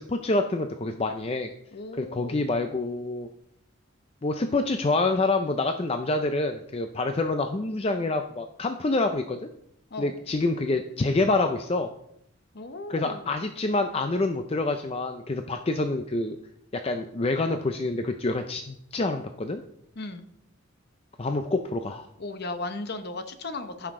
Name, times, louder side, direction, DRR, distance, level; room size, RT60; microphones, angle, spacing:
voice 1, 0.0-1.5 2.0-3.3 4.2-9.5 10.0-11.9 12.9-16.4 16.7-19.6 21.2-22.1, left 2 dB, 30° left, 7 dB, 0.4 m, -27 dB
voice 2, 1.7-2.5 9.9-10.2 12.5-13.3 20.0-20.3 22.2-23.9, left 2 dB, 50° left, 9 dB, 0.8 m, -36 dB
14.5 x 5.8 x 3.7 m, 0.74 s
head